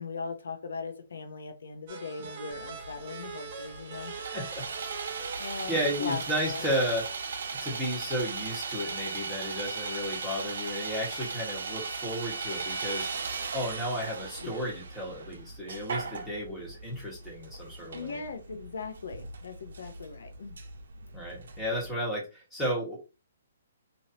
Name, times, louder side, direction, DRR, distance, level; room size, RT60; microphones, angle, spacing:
voice 1, 0.0-4.1 5.4-6.7 14.4-14.6 17.9-20.6, left 5 dB, 80° left, 0.7 m, -39 dB
sound 1, 1.9-7.3, right 5 dB, 40° right, 1.2 m, -44 dB
Sawing, 2.5-21.9, right 4 dB, 70° right, 0.6 m, -38 dB
voice 2, 4.2-4.7 5.2-7.0 7.6-13.3 13.5-18.2 21.1-23.0, equal, 5° left, 1.4 m, -33 dB
3.1 x 2.7 x 2.8 m
hypercardioid pair, 155°, 0 cm